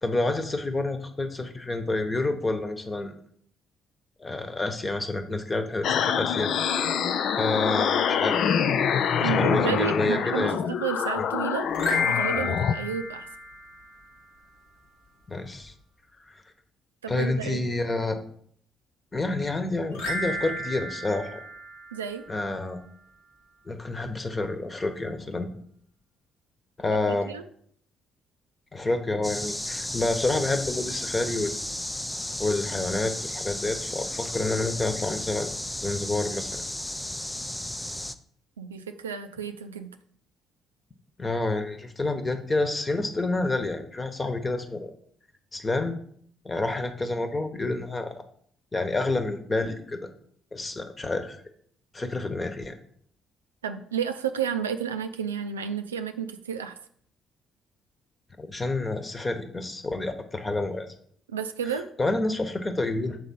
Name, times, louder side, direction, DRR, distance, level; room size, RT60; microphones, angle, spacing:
voice 1, 0.0-3.2 4.2-6.5 7.4-8.5 9.2-10.5 15.3-15.7 16.3-16.4 17.1-18.2 19.1-21.4 22.3-22.8 23.6-25.5 26.8-27.3 28.7-31.5 32.4-35.5 35.8-36.6 41.2-44.9 45.5-46.0 46.4-48.1 48.7-50.1 50.5-51.4 51.9-52.8 58.4-60.9 62.0-63.2, left 2 dB, 25° left, 7 dB, 1.1 m, -28 dB
sound 1, 5.8-12.7, left 7 dB, 60° left, 0.4 m, -25 dB
voice 2, 9.2-11.7 12.1-13.3 17.0-17.6 21.9-22.2 27.3-27.4 38.6-40.0 53.6-56.8 61.3-61.9, right 7 dB, 90° right, 8 dB, 0.4 m, -31 dB
sound 2, 11.7-14.2 19.9-22.5, left 3 dB, 75° left, 1.4 m, -32 dB
sound 3, 29.2-38.1, left 1 dB, 10° left, 0.5 m, -34 dB
6.3 x 3.8 x 5.5 m, 0.62 s
hypercardioid pair, 45°, 0 cm